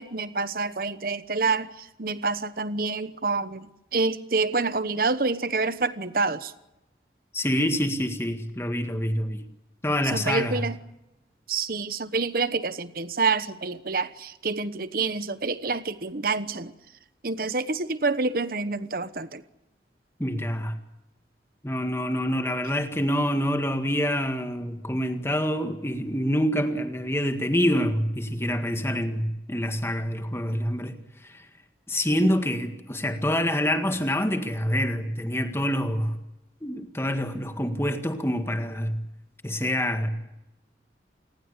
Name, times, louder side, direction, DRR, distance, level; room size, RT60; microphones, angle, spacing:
voice 1, 0.0-1.7 2.0-3.7 3.9-6.5 10.1-10.8 11.5-16.7 17.2-19.4, right 4 dB, 55° right, 13 dB, 1.1 m, -27 dB
voice 2, 7.3-9.4 9.8-10.6 20.2-20.8 21.6-31.5 31.9-36.2 36.6-39.0 39.4-40.1, equal, 15° left, 7 dB, 1.8 m, -26 dB
28.0 x 20.0 x 8.2 m, 0.94 s
head